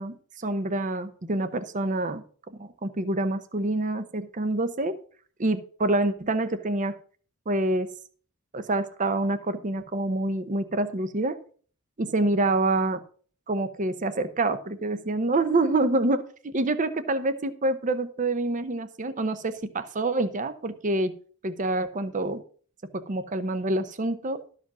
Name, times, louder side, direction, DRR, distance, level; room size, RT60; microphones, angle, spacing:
voice 1, 0.0-2.2 2.5-5.0 5.4-6.9 7.5-7.9 8.5-11.4 12.0-13.0 13.5-21.1 21.4-22.4 22.9-24.4, right 2 dB, 40° right, 11 dB, 0.7 m, -27 dB
12.5 x 5.0 x 6.1 m, 0.44 s
head